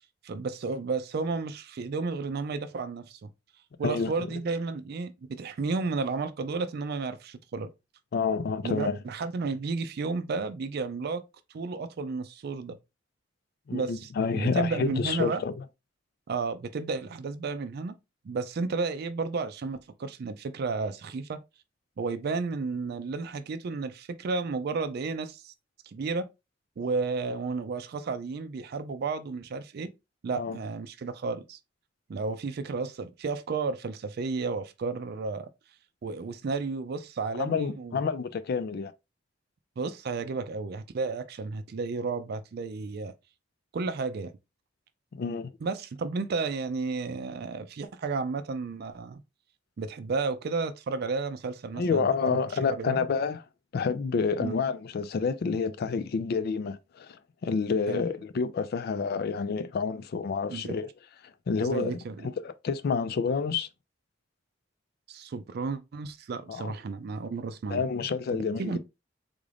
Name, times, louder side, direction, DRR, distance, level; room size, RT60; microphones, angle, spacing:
voice 1, 0.2-3.3 3.8-7.7 8.6-11.2 11.5-12.8 13.7-15.4 16.3-17.9 18.2-21.4 22.0-25.5 25.8-26.3 26.8-29.9 30.2-31.6 32.1-35.5 36.0-38.0 39.8-43.1 43.7-44.3 45.6-49.2 49.8-52.4 52.8-53.0 54.4-54.6 57.9-58.0 60.5-60.8 61.6-62.3 65.1-67.8 68.3-68.8, right 4 dB, 55° right, 0.4 m, -32 dB
voice 2, 3.8-4.3 8.1-9.0 13.7-15.5 30.3-30.6 37.4-38.9 45.1-45.5 51.7-53.4 53.7-57.2 57.4-60.9 61.5-62.0 62.2-63.7 66.5-66.7 67.7-68.8, left 5 dB, 55° left, 0.4 m, -29 dB
3.7 x 2.5 x 3.3 m
head